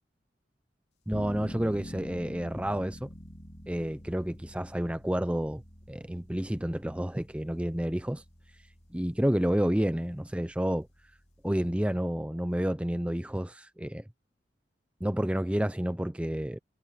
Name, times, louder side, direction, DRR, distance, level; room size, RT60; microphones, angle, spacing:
sound 1, 1.1-11.9, equal, 35° left, 4.0 m, -47 dB
voice 1, 1.1-3.1 3.7-5.6 5.9-8.2 8.9-10.9 11.4-14.0 15.0-16.6, equal, 5° right, 0.6 m, -30 dB
head